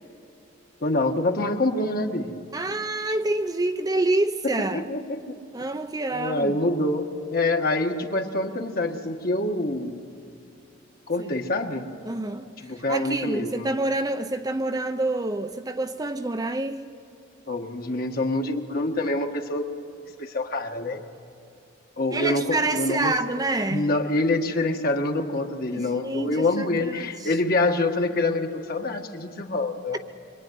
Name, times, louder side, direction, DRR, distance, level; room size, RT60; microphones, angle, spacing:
voice 1, 0.8-2.3 4.4-5.2 6.1-10.0 11.1-11.8 12.6-13.7 17.5-19.7 20.2-21.0 22.0-23.1 23.7-30.0, left 2 dB, 50° left, 1.7 m, -26 dB
voice 2, 2.5-4.8 5.5-6.6 11.2-11.3 12.0-12.5 12.9-16.9 22.1-23.9 25.7-27.3, right 2 dB, 20° right, 0.7 m, -27 dB
24.5 x 23.5 x 9.4 m
head